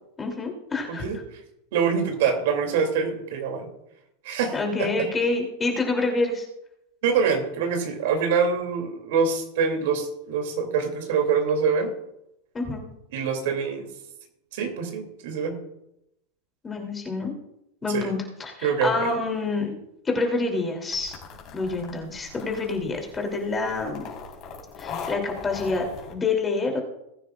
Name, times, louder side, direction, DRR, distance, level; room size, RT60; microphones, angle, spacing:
voice 1, 0.2-1.0 4.5-6.5 12.5-12.8 16.6-17.3 17.8-19.7 20.0-21.2 21.5-24.1 24.8-26.8, left 3 dB, 15° left, 2 dB, 3.0 m, -27 dB
voice 2, 1.7-3.7 4.2-4.5 4.8-4.9 7.0-11.9 13.1-13.9 14.5-15.6 17.9-18.1 18.6-19.1, right 6 dB, 70° right, 4 dB, 2.8 m, -25 dB
sound 1, 20.9-26.1, left 5 dB, 40° left, 4.2 m, -40 dB
20.5 x 9.8 x 2.5 m, 0.83 s
supercardioid pair, 135°, 0 cm